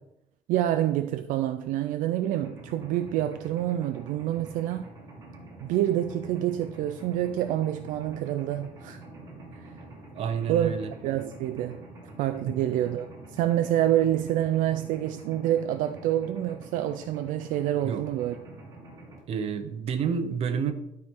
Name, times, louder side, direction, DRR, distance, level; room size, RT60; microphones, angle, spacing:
voice 1, 0.5-4.9 5.6-9.0 9.6-9.7 10.5-10.7 11.0-11.8 12.2-13.1 13.3-18.4, right 12 dB, 70° right, 0.4 m, -27 dB
Mechanisms, 2.3-19.2, right 2 dB, 20° right, 2.1 m, -46 dB
voice 2, 10.1-10.9 12.4-12.6 17.8-18.0 19.3-20.7, right 6 dB, 45° right, 0.8 m, -29 dB
12.0 x 4.6 x 3.7 m
cardioid pair, 165°, 14 cm